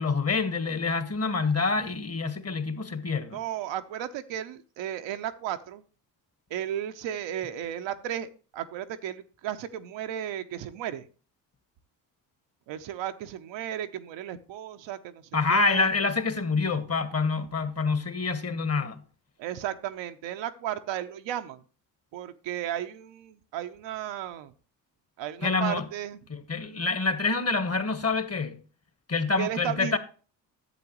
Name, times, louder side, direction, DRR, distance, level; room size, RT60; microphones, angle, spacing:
voice 1, 0.0-3.4 15.3-19.0 25.4-25.9 26.3-28.6 29.1-30.0, left 4 dB, 30° left, 1.4 m, -27 dB
voice 2, 3.3-5.8 6.5-11.1 12.7-15.9 19.4-21.6 22.1-24.5 25.2-26.2 29.4-30.0, right 11 dB, 65° right, 0.9 m, -34 dB
11.0 x 7.7 x 3.0 m
hypercardioid pair, 50°, 48 cm